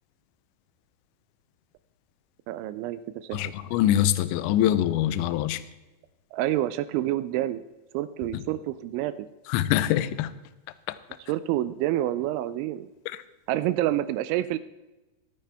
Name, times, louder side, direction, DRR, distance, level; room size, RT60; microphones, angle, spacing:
voice 1, 2.5-3.5 6.3-7.6 7.9-9.1 11.3-12.9 13.5-14.6, right 14 dB, 85° right, 14 dB, 2.8 m, -28 dB
voice 2, 3.3-5.6 8.3-8.4 9.5-10.3 10.9-11.0 13.1-13.2, left 12 dB, 80° left, 14 dB, 2.9 m, -24 dB
23.0 x 9.4 x 3.4 m, 1.1 s
omnidirectional pair, 5.6 m